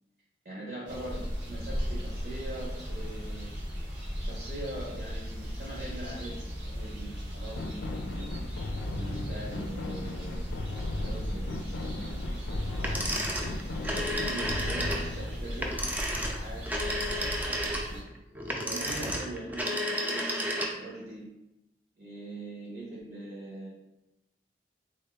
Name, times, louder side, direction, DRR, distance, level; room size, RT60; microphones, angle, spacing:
voice 1, 0.4-3.5 4.2-8.3 8.9-12.1 12.5-13.3 13.7-18.0 18.6-19.8 20.0-21.3 22.0-23.7, right 1 dB, 60° right, -6 dB, 1.2 m, -42 dB
sound 1, 0.9-18.0, equal, 80° right, 1.4 m, -37 dB
sound 2, 7.6-15.4, left 2 dB, 85° left, 0.4 m, -37 dB
sound 3, 12.8-21.0, equal, 10° right, 0.3 m, -32 dB
3.6 x 2.8 x 3.5 m, 0.90 s
head